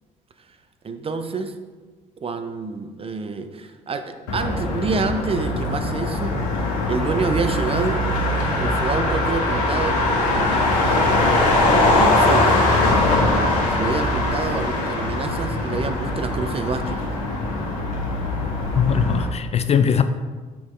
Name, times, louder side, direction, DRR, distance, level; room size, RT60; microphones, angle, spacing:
voice 1, 0.8-1.5 2.2-6.4 6.9-8.0 8.5-10.9 11.6-12.5 13.7-17.1, right 4 dB, 30° right, 8 dB, 0.7 m, -27 dB
Motor vehicle (road), 4.3-19.2, left 2 dB, 80° left, 1.3 m, -21 dB
voice 2, 18.8-20.0, left 7 dB, 35° left, 9 dB, 0.4 m, -20 dB
6.3 x 5.8 x 3.2 m, 1.3 s
hypercardioid pair, 60°, 18 cm